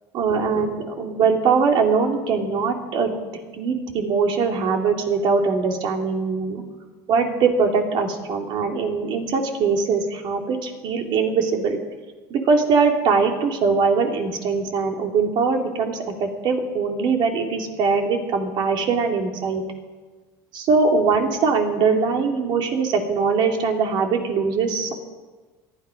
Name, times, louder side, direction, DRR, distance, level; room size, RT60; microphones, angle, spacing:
voice 1, 0.1-3.2 3.6-6.6 7.1-11.8 12.3-19.6 20.5-24.9, right 5 dB, 55° right, 3 dB, 2.8 m, -21 dB
19.0 x 12.5 x 5.2 m, 1.3 s
supercardioid pair, 110°, 9 cm